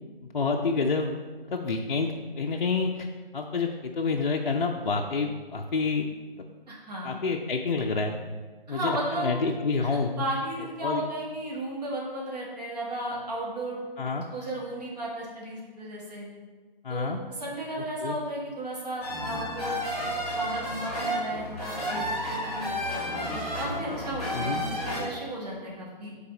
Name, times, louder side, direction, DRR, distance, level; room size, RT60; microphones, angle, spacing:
voice 1, 0.3-1.1 1.5-3.1 3.3-6.1 6.3-6.4 7.0-8.2 8.7-10.2 10.8-11.0 14.0-14.3 16.8-17.2 18.0-18.2 24.3-24.6, left 4 dB, 55° left, 1 dB, 0.5 m, -28 dB
voice 2, 6.7-7.1 8.7-9.3 9.8-13.8 14.3-16.3 16.9-19.8 20.3-22.7 23.3-26.2, right 1 dB, 45° right, -4 dB, 1.7 m, -34 dB
sound 1, 19.0-25.0, equal, ahead, 1.6 m, -31 dB
5.5 x 4.1 x 5.2 m, 1.4 s
figure-of-eight pair, 150°, 29 cm